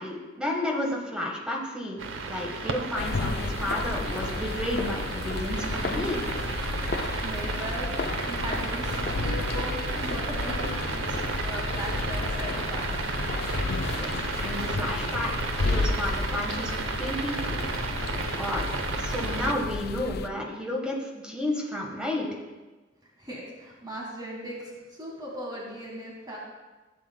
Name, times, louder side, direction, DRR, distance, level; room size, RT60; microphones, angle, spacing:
voice 1, 0.0-2.0 2.3-6.2 13.9-17.6 18.4-18.6 19.0-22.3, left 1 dB, 5° right, -1 dB, 1.3 m, -32 dB
sound 1, 2.0-19.5, right 4 dB, 85° right, 0.7 m, -33 dB
sound 2, 3.0-20.3, left 3 dB, 50° left, 0.4 m, -32 dB
voice 2, 7.2-7.9 8.3-13.0 23.2-26.4, right 1 dB, 20° right, -3 dB, 1.7 m, -38 dB
15.5 x 7.8 x 2.3 m, 1.2 s
head